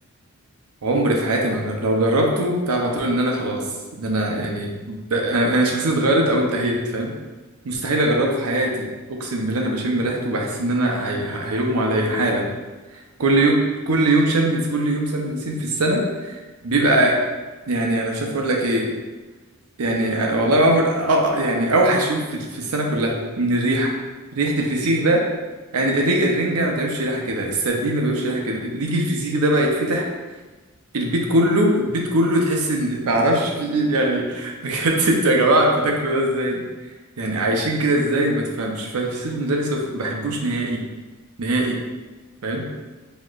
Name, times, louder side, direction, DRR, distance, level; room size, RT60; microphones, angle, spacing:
voice 1, 0.8-3.6 4.0-7.1 7.6-12.5 13.2-13.6 13.9-17.2 17.7-18.9 19.8-23.1 23.4-23.9 24.3-25.2 25.7-30.1 30.9-36.6 37.2-40.8 41.4-41.8 42.4-42.7, right 1 dB, 85° right, 0 dB, 0.6 m, -21 dB
4.1 x 2.9 x 2.4 m, 1.3 s
head